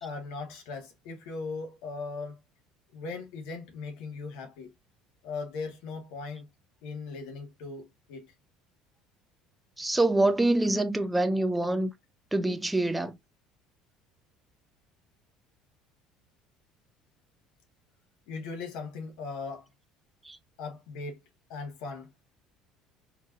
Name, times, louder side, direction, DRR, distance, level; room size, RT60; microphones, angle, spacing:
voice 1, 0.0-2.4 2.9-4.7 5.2-6.4 6.8-8.3 18.3-19.7 20.6-21.2 21.5-22.1, left 4 dB, 70° left, 1.4 m, -38 dB
voice 2, 9.8-11.9 12.3-13.2 20.3-20.4, right 2 dB, 5° right, 0.3 m, -25 dB
4.4 x 3.0 x 2.4 m
cardioid pair, 175°, 0 cm